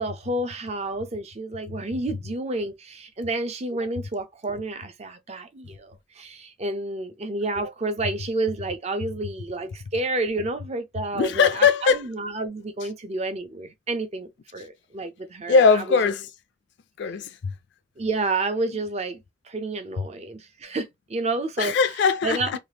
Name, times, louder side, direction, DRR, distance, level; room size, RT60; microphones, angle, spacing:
voice 1, 0.0-16.0 18.0-21.8 22.2-22.6, right 2 dB, 35° right, 0.5 m, -30 dB
voice 2, 11.1-12.0 15.5-16.3 17.0-17.5 21.6-22.6, left 5 dB, 60° left, 0.3 m, -20 dB
3.3 x 2.4 x 2.8 m
head